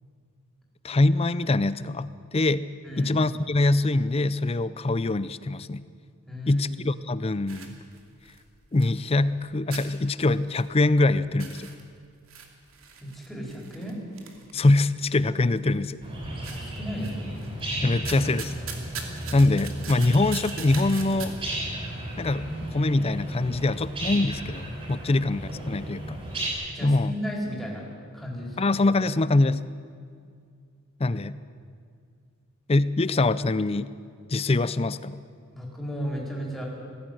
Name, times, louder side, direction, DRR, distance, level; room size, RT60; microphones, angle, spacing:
voice 1, 0.8-2.7 3.0-5.8 6.5-7.8 8.7-11.7 14.5-16.0 17.8-18.5 19.3-21.3 22.2-26.2 26.8-27.1 28.6-29.6 31.0-31.4 32.7-33.9 34.3-35.2, left 2 dB, 30° left, 16 dB, 0.5 m, -24 dB
voice 2, 2.8-3.2 6.3-6.7 13.0-14.0 16.4-17.1 25.0-25.1 26.7-27.9 28.1-28.6 31.0-31.2 35.5-36.7, equal, ahead, -3 dB, 4.4 m, -34 dB
sound 1, 7.5-9.4 9.7-11.0 11.3-15.1 15.6-16.1 16.4-17.6 17.9-21.3, right 6 dB, 75° right, 2.6 m, -41 dB
sound 2, 16.0-26.5, right 1 dB, 25° right, 6.5 m, -34 dB
19.0 x 15.5 x 9.3 m, 2.3 s
head